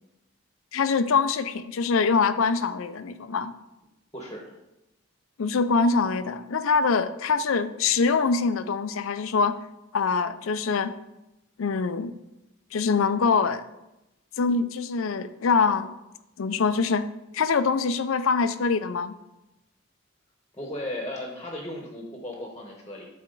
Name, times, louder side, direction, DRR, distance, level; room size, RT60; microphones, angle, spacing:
voice 1, 0.7-3.5 5.4-9.6 9.9-10.9 11.6-12.1 12.7-13.6 14.4-15.9 16.4-17.1 17.3-19.1, left 5 dB, 80° left, 12 dB, 0.5 m, -24 dB
voice 2, 4.1-4.5 20.5-23.1, left 1 dB, 15° left, 0 dB, 1.1 m, -36 dB
12.0 x 4.2 x 3.9 m, 0.95 s
head